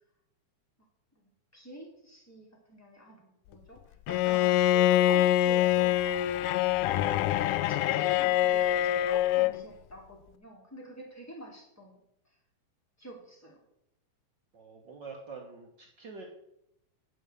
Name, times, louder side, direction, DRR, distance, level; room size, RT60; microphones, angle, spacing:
voice 1, 1.1-6.1 7.7-12.0 13.0-13.6, equal, 5° left, -1 dB, 2.0 m, -47 dB
Bowed string instrument, 4.1-9.6, left 13 dB, 85° left, 2.0 m, -25 dB
voice 2, 14.5-16.2, right 4 dB, 55° right, 1 dB, 1.3 m, -45 dB
9.5 x 6.2 x 6.6 m, 0.79 s
omnidirectional pair, 3.5 m